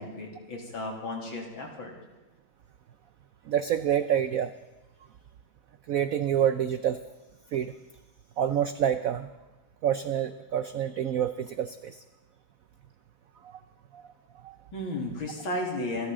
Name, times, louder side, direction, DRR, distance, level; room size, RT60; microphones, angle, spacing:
voice 1, 0.0-1.9 14.7-16.1, left 2 dB, 80° left, 0 dB, 3.8 m, -34 dB
voice 2, 3.5-4.5 5.9-7.0 7.5-7.7 8.4-9.3 9.8-12.0 13.4-13.6 13.9-14.0 14.4-14.6, right 9 dB, 75° right, 11 dB, 0.7 m, -27 dB
28.0 x 13.0 x 3.8 m, 1.2 s
omnidirectional pair, 2.2 m